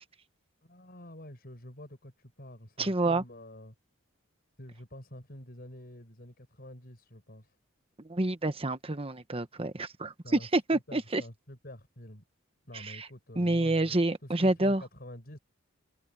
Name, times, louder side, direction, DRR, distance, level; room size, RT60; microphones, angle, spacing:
voice 1, 0.6-3.7 4.6-7.6 10.2-12.2 12.7-14.0 14.2-15.4, left 1 dB, 50° left, 5.7 m, -48 dB
voice 2, 2.8-3.2 8.0-11.2 12.7-13.1 13.4-14.8, right 2 dB, 30° right, 1.1 m, -28 dB
head